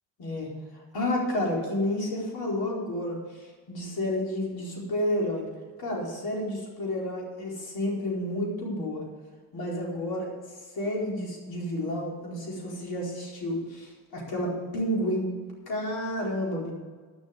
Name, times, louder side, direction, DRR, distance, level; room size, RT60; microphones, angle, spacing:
voice 1, 0.2-0.5 0.9-5.5 5.8-9.0 9.5-10.3 10.7-15.3 15.7-16.7, left 1 dB, 60° left, -3 dB, 4.6 m, -30 dB
11.0 x 7.4 x 8.0 m, 1.5 s
supercardioid pair, 75°, 40 cm